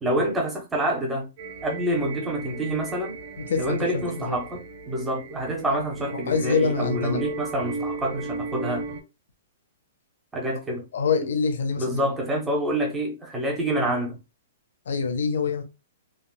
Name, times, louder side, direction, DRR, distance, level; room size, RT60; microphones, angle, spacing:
voice 1, 0.0-1.3 1.6-3.1 3.6-8.8 10.3-10.8 11.8-14.2, right 1 dB, 5° right, 0.7 m, -27 dB
sound 1, 1.4-9.0, right 3 dB, 40° right, 0.8 m, -36 dB
voice 2, 3.4-4.4 5.7-5.8 6.3-7.3 10.9-12.1 14.9-15.6, left 5 dB, 70° left, 0.7 m, -25 dB
3.6 x 2.3 x 2.3 m
hypercardioid pair, 175°, 0 cm